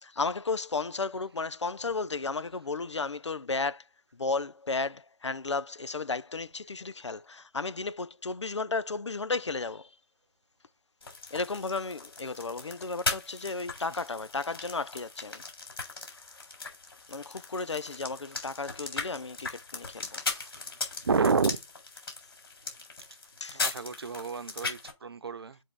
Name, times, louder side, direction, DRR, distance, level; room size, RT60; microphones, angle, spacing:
voice 1, 0.0-3.8 4.1-9.9 11.3-15.4 17.1-20.2 23.4-23.7, left 3 dB, 75° left, 0.8 m, -34 dB
sound 1, 11.0-24.9, left 4 dB, 55° left, 3.9 m, -38 dB
voice 2, 20.3-21.6 23.5-25.6, right 4 dB, 60° right, 0.8 m, -30 dB
7.4 x 3.9 x 4.7 m
figure-of-eight pair, 155°, 15 cm